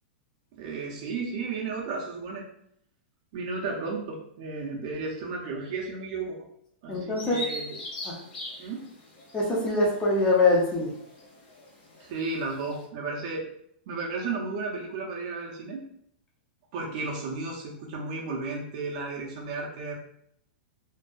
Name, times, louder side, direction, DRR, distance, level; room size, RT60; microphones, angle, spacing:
voice 1, 0.5-2.4 3.3-6.5 6.8-7.8 8.6-8.8 12.0-13.5 13.9-15.8 16.7-19.9, right 4 dB, 45° right, -2 dB, 0.4 m, -33 dB
voice 2, 6.9-7.4 8.0-8.2 9.3-10.9, left 2 dB, 15° left, -3 dB, 0.4 m, -23 dB
Bird vocalization bird call bird song, 7.2-12.8, left 2 dB, 80° left, 1.2 m, -41 dB
2.5 x 2.2 x 2.2 m, 0.73 s
supercardioid pair, 165°, 6 cm